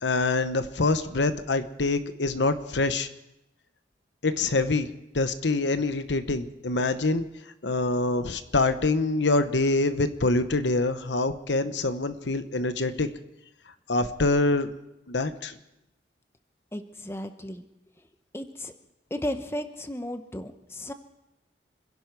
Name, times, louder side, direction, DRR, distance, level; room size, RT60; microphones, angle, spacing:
voice 1, 0.0-3.1 4.2-4.9 5.1-7.2 7.6-13.1 13.9-14.7 15.1-15.5, left 3 dB, 80° left, 10 dB, 0.9 m, -25 dB
voice 2, 16.7-17.6 18.3-18.7 19.1-20.9, left 1 dB, 15° left, 8 dB, 0.8 m, -34 dB
28.0 x 11.0 x 4.7 m, 0.88 s
head